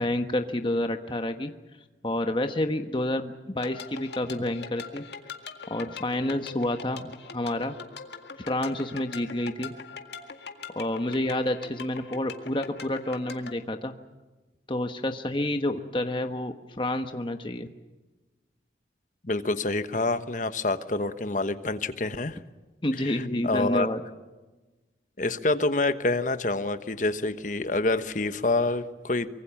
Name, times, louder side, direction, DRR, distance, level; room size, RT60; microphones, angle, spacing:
voice 1, 0.0-1.5 2.0-5.0 5.7-7.7 8.4-9.7 10.7-13.9 14.7-17.7 22.8-24.0, left 1 dB, 30° left, 6 dB, 1.2 m, -29 dB
sound 1, 3.6-13.5, left 5 dB, 70° left, 2.0 m, -42 dB
voice 2, 19.2-22.4 23.0-23.9 25.2-29.3, left 2 dB, 45° left, 11 dB, 1.2 m, -27 dB
25.0 x 23.5 x 7.2 m, 1.2 s
head